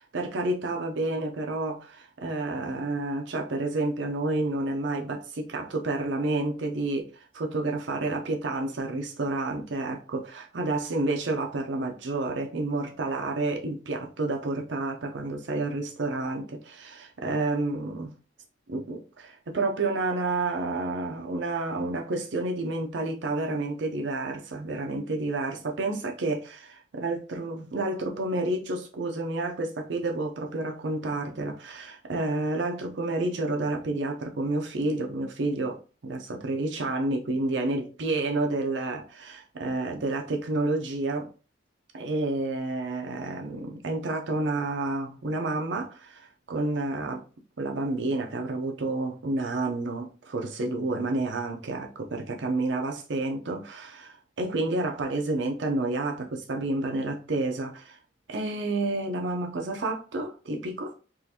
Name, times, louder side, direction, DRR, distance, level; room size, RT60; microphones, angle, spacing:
voice 1, 0.1-7.1 7.3-18.1 18.7-35.8 36.0-41.3 41.9-47.2 47.6-58.0 58.3-60.9, right 2 dB, 70° right, 0.6 m, -30 dB
3.8 x 2.4 x 2.7 m
head